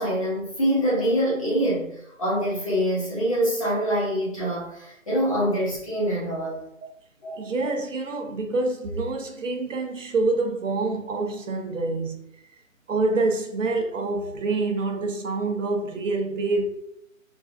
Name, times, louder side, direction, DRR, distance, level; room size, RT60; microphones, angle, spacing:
voice 1, 0.0-1.9 2.2-6.6 7.2-7.4, equal, 25° left, 0.8 m, -25 dB
voice 2, 7.3-12.3 12.9-16.7, right 3 dB, 65° right, 0.7 m, -26 dB
2.4 x 2.2 x 2.4 m
figure-of-eight pair, 160°, 40 cm